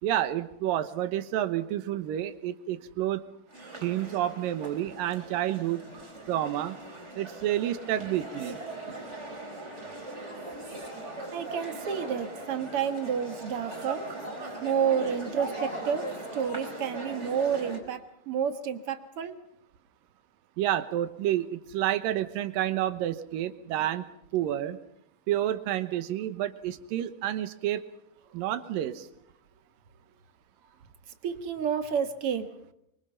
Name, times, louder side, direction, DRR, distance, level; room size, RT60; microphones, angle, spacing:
voice 1, 0.0-3.2 3.8-5.8 6.3-6.8 7.2-8.6 20.6-24.0 24.3-24.8 25.3-27.8 28.3-29.1, right 12 dB, 75° right, 11 dB, 2.8 m, -29 dB
sound 1, 3.5-17.8, right 2 dB, 20° right, 4.6 m, -40 dB
voice 2, 11.3-14.0 14.6-16.1 16.3-19.3 31.2-32.5, right 7 dB, 50° right, 8 dB, 1.9 m, -30 dB
24.5 x 24.5 x 5.7 m, 0.77 s
omnidirectional pair, 4.1 m